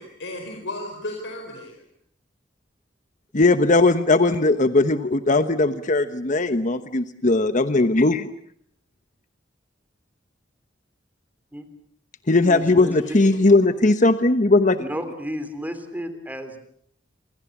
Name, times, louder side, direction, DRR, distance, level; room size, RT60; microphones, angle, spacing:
voice 1, 0.0-1.8 12.8-13.4, left 1 dB, 70° left, 3 dB, 4.9 m, -34 dB
voice 2, 3.3-8.3 12.3-14.8, left 2 dB, 40° left, 11 dB, 1.1 m, -18 dB
voice 3, 12.4-12.9 14.8-16.6, equal, 10° right, 9 dB, 3.2 m, -32 dB
28.0 x 26.0 x 7.3 m, 0.66 s
head